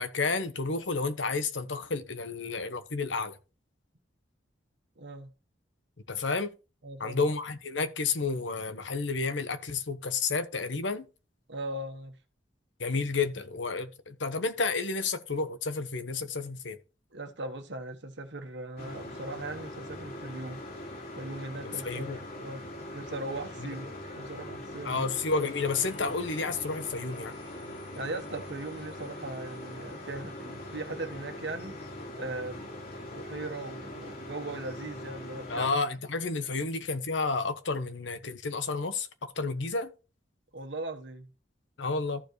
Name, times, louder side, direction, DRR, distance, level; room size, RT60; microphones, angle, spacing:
voice 1, 0.0-3.4 6.1-6.5 7.0-11.1 12.8-16.8 21.8-22.2 24.8-27.3 35.5-39.1 39.4-39.9 41.8-42.2, left 4 dB, 75° left, 1.1 m, -31 dB
voice 2, 5.0-5.3 6.8-7.2 11.5-12.1 17.1-20.6 21.1-22.6 22.9-25.1 27.9-31.8 32.1-32.7 33.1-35.7 40.5-41.3, right 2 dB, 65° right, 1.3 m, -39 dB
sound 1, 18.8-35.7, left 1 dB, 55° left, 2.7 m, -42 dB
sound 2, 25.5-33.9 34.3-34.4, right 2 dB, 25° left, 2.4 m, -55 dB
14.0 x 4.7 x 3.2 m
head